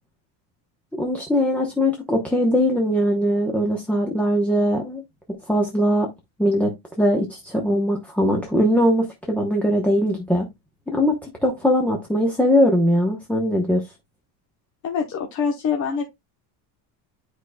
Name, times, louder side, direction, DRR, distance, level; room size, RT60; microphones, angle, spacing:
voice 1, 0.9-5.0 5.5-6.1 6.4-6.7 7.0-10.5 10.9-11.1 11.4-13.8, equal, 5° left, 0.8 m, -20 dB
voice 2, 14.8-16.0, left 6 dB, 35° left, 1.0 m, -24 dB
10.0 x 5.0 x 2.2 m
cardioid pair, 165°, 50 cm